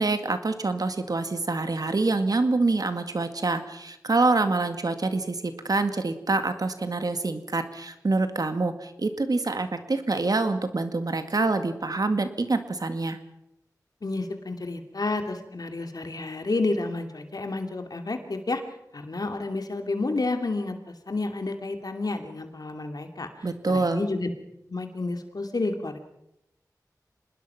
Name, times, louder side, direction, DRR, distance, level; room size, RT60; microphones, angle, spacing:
voice 1, 0.0-13.2 23.4-24.0, right 3 dB, 65° right, 8 dB, 2.0 m, -26 dB
voice 2, 14.0-18.6 18.9-23.3 23.7-24.3 24.7-26.0, left 3 dB, 65° left, 6 dB, 2.8 m, -30 dB
25.5 x 20.0 x 5.9 m, 0.83 s
wide cardioid pair, 60°, 7 cm